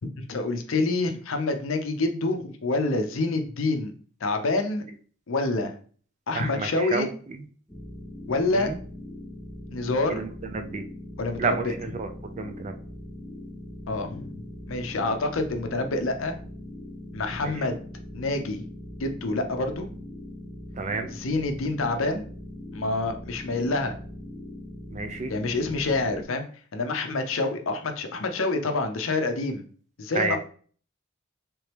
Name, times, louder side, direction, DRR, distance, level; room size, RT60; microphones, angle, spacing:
voice 1, 0.2-3.9 4.2-4.8 5.3-5.7 6.3-7.1 8.3-8.7 9.7-10.2 11.2-11.7 13.9-16.3 17.1-17.8 18.1-18.6 19.0-19.9 21.1-22.2 22.7-23.9 25.3-26.4 26.7-29.6 30.0-30.4, left 2 dB, 70° left, 6 dB, 0.6 m, -27 dB
voice 2, 6.3-7.1 8.6-8.8 10.1-10.3 10.5-10.8 11.4-12.1 12.4-12.7 17.4-17.5 20.8-21.1 24.9-25.3 30.1-30.4, right 4 dB, 35° right, 6 dB, 0.4 m, -29 dB
sound 1, 7.7-26.2, left 1 dB, 5° left, 0.6 m, -41 dB
3.4 x 3.0 x 3.3 m, 0.44 s
head